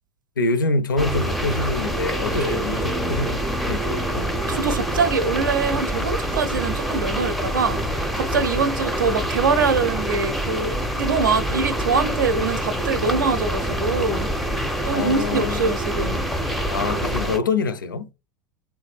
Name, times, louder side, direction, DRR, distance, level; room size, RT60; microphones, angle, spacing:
voice 1, 0.4-4.3 8.4-8.5 14.8-15.6 16.7-18.1, left 3 dB, 75° left, 0.4 m, -25 dB
sound 1, 1.0-17.4, equal, ahead, 0.5 m, -26 dB
voice 2, 4.4-14.3 14.8-16.3, right 4 dB, 75° right, 0.6 m, -24 dB
3.1 x 2.3 x 3.4 m
figure-of-eight pair, 80°, 11 cm